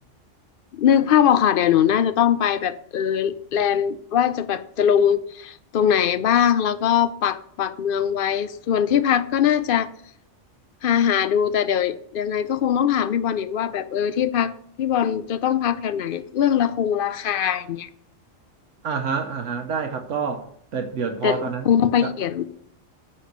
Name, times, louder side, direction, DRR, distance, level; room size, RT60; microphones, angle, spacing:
voice 1, 0.7-9.9 10.8-14.5 14.8-17.9 21.2-21.4 21.7-22.4, left 9 dB, 60° left, 0.7 m, -21 dB
voice 2, 18.8-21.7 22.0-22.1, right 6 dB, 75° right, 1.2 m, -28 dB
9.7 x 4.3 x 6.6 m
omnidirectional pair, 1.3 m